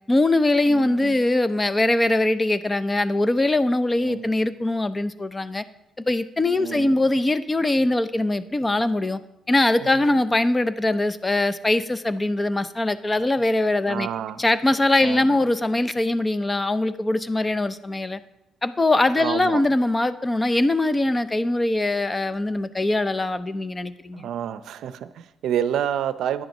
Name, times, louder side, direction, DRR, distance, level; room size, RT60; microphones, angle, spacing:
voice 1, 0.1-5.6 6.0-9.2 9.5-14.1 14.4-18.2 18.6-24.3, left 2 dB, 20° left, 13 dB, 0.5 m, -22 dB
voice 2, 0.7-1.2 4.0-4.3 6.6-6.9 13.9-14.4 15.0-15.4 19.2-19.6 24.1-26.4, right 10 dB, 75° right, 13 dB, 0.5 m, -29 dB
9.9 x 7.7 x 5.4 m, 0.90 s
cardioid pair, 90°, 0 cm